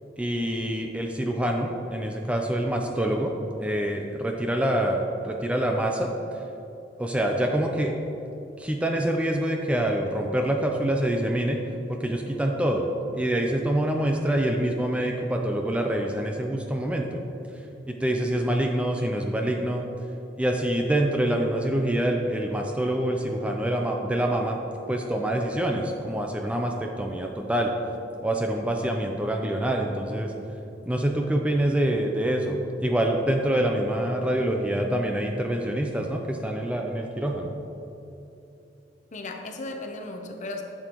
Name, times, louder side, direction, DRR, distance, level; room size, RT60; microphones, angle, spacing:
voice 1, 0.2-3.3 3.6-6.4 7.0-8.0 8.6-11.6 11.9-12.9 13.1-17.2 17.9-19.9 20.4-24.6 24.9-27.7 28.2-30.3 30.9-37.5, right 1 dB, 5° right, 2 dB, 0.4 m, -26 dB
voice 2, 39.1-40.6, left 2 dB, 45° left, 4 dB, 0.7 m, -36 dB
11.0 x 7.0 x 3.0 m, 2.9 s
head